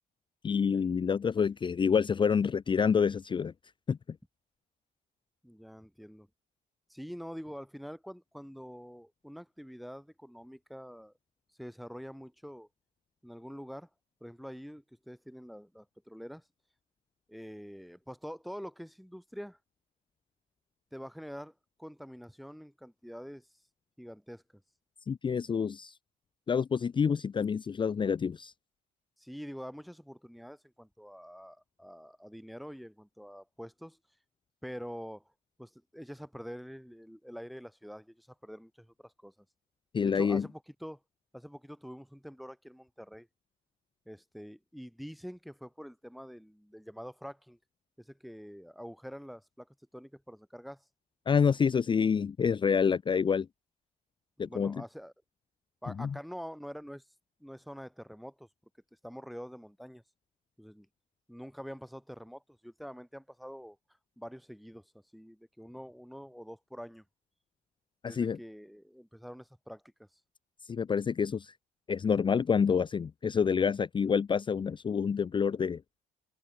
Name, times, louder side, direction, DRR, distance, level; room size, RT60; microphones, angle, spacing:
voice 1, 0.4-3.5 3.9-4.0 25.1-26.0 26.5-28.5 39.9-40.5 51.3-53.5 54.4-54.8 56.0-56.1 68.0-68.4 70.6-71.5 71.9-75.8, left 6 dB, 30° left, 0.7 m, -27 dB
voice 2, 5.4-6.3 6.9-11.1 11.6-12.7 13.2-13.9 14.2-16.4 17.3-19.6 20.9-23.5 24.0-24.4 29.2-34.0 34.6-35.2 35.6-39.3 40.0-41.0 41.3-43.3 44.1-47.6 48.0-50.8 54.4-55.1 55.8-57.0 57.4-58.5 59.0-60.0 60.6-60.9 61.3-63.8 64.2-67.0 68.0-70.1, equal, ahead, 2.0 m, -46 dB
cardioid pair, 110°, 17 cm